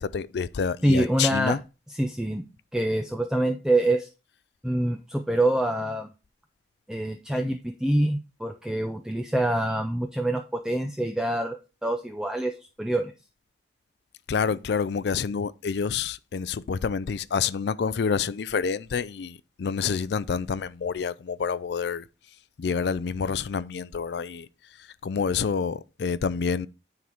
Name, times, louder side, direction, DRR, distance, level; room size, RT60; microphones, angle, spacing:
voice 1, 0.0-1.6 14.3-22.0 22.6-24.5 25.0-26.7, left 6 dB, 65° left, 0.4 m, -28 dB
voice 2, 0.8-1.6 1.9-2.4 2.7-4.1 4.6-6.1 6.9-13.1, right 1 dB, 5° right, 0.4 m, -26 dB
9.3 x 3.9 x 4.4 m
head